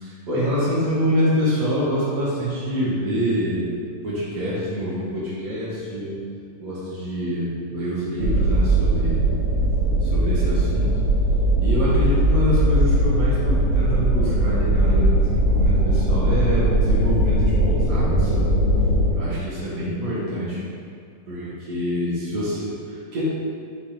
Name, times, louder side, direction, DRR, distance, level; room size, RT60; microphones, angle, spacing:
voice 1, 0.0-3.7 4.0-6.2 6.6-9.2 10.0-10.9 11.6-18.5 19.1-20.6 21.3-23.2, equal, 40° right, -9 dB, 1.3 m, -26 dB
sound 1, 8.2-19.1, right 1 dB, 85° left, 2.8 m, -19 dB
6.6 x 3.5 x 4.4 m, 2.3 s
omnidirectional pair, 4.0 m